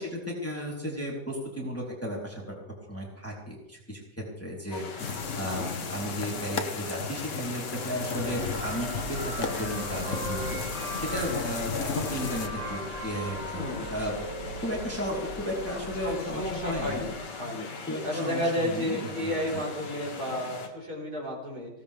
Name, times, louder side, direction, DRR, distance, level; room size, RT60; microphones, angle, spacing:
voice 1, 0.0-2.6 2.9-14.2 14.6-17.0 17.9-19.6, equal, 5° left, -3 dB, 3.4 m, -34 dB
sound 1, 4.7-20.7, left 4 dB, 75° left, 2.3 m, -41 dB
sound 2, 5.0-12.5, left 5 dB, 50° left, 1.4 m, -34 dB
voice 2, 5.3-5.7 13.6-13.9 16.0-17.7 18.0-21.7, left 1 dB, 60° right, -1 dB, 5.2 m, -32 dB
sound 3, 8.2-17.1, right 1 dB, 40° right, 5.1 m, -39 dB
19.0 x 17.5 x 3.5 m, 0.90 s
omnidirectional pair, 1.9 m